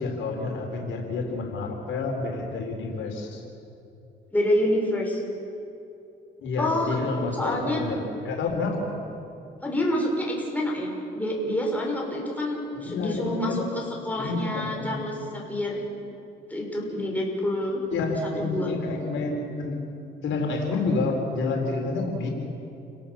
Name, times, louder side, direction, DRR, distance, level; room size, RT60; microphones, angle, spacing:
voice 1, 0.0-3.4 6.4-9.0 12.7-13.7 14.2-15.1 17.9-19.8 20.2-22.3, left 3 dB, 75° left, 1 dB, 4.1 m, -29 dB
voice 2, 4.3-5.2 6.6-7.0 7.4-7.8 9.6-15.8 16.5-17.8 18.4-18.7, left 1 dB, 10° left, -2 dB, 6.0 m, -27 dB
29.5 x 18.0 x 7.2 m, 2.8 s
cardioid pair, 90°, 20 cm